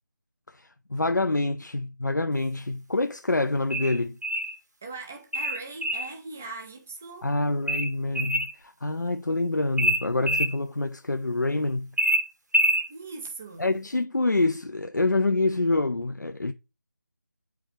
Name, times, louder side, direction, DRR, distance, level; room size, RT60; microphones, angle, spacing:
voice 1, 0.5-4.2 7.2-11.9 13.6-16.5, left 2 dB, 75° left, 0.6 m, -26 dB
sound 1, 3.7-4.6 5.3-6.1 7.7-8.5 9.8-10.5 12.0-12.9, equal, 70° right, 1.2 m, -25 dB
voice 2, 4.8-7.3 12.9-13.7, right 3 dB, 5° right, 0.3 m, -40 dB
7.9 x 4.9 x 3.2 m
figure-of-eight pair, 160°, 10 cm